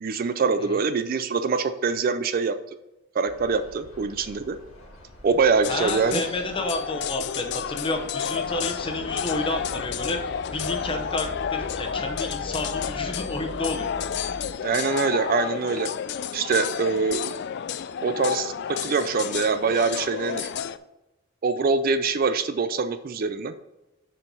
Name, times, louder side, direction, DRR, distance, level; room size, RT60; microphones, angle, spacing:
voice 1, 0.0-2.6 3.1-4.6 5.2-6.2 14.6-15.9 16.3-17.3 18.0-20.5 21.4-23.5, right 4 dB, 45° right, 11 dB, 0.4 m, -24 dB
sound 1, 3.3-14.5, left 1 dB, 70° left, 1.9 m, -42 dB
sound 2, 5.6-20.8, left 8 dB, 55° left, 0.3 m, -31 dB
voice 2, 5.7-10.2 10.5-13.9, left 2 dB, 25° left, 4 dB, 0.9 m, -30 dB
7.1 x 4.5 x 5.4 m, 0.99 s
head